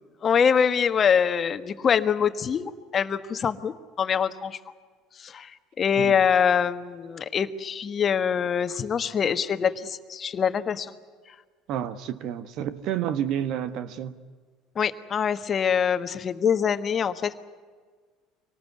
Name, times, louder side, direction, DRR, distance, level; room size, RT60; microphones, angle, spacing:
voice 1, 0.2-4.6 5.2-10.9 14.7-17.4, left 7 dB, 40° left, 1.4 m, -24 dB
voice 2, 11.7-14.1, right 10 dB, 60° right, 1.4 m, -30 dB
25.0 x 19.0 x 9.5 m
hypercardioid pair, 80°, 0 cm